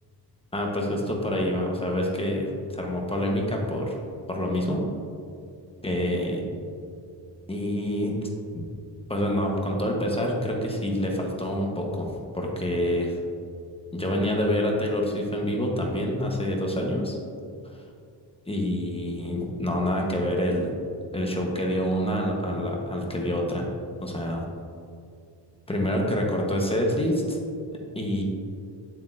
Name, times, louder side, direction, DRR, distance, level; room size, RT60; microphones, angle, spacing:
voice 1, 0.5-4.0 4.3-4.8 5.8-6.4 7.5-8.2 8.5-8.7 9.1-13.2 13.9-17.2 18.5-20.8 21.1-23.7 24.0-24.4 25.7-27.4 27.9-28.2, equal, 15° left, -1 dB, 1.1 m, -27 dB
8.3 x 7.5 x 2.6 m, 2.4 s
wide cardioid pair, 120°, 42 cm